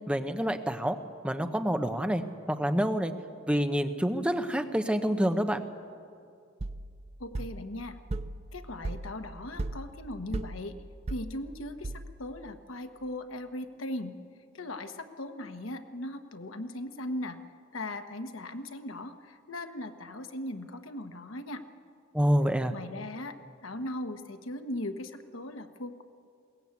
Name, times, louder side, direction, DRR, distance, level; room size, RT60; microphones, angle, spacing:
voice 1, 0.1-1.0 1.2-2.2 2.5-3.1 3.5-5.6 22.1-22.7, equal, 5° right, 7 dB, 0.8 m, -27 dB
sound 1, 6.6-12.4, right 2 dB, 30° right, 0.5 m, -38 dB
voice 2, 7.2-8.0 8.5-10.7 11.1-11.9 12.2-14.1 14.5-17.4 17.7-21.6 22.7-23.4 23.6-26.0, left 1 dB, 85° left, 7 dB, 1.3 m, -38 dB
21.5 x 18.5 x 8.4 m, 2.3 s
head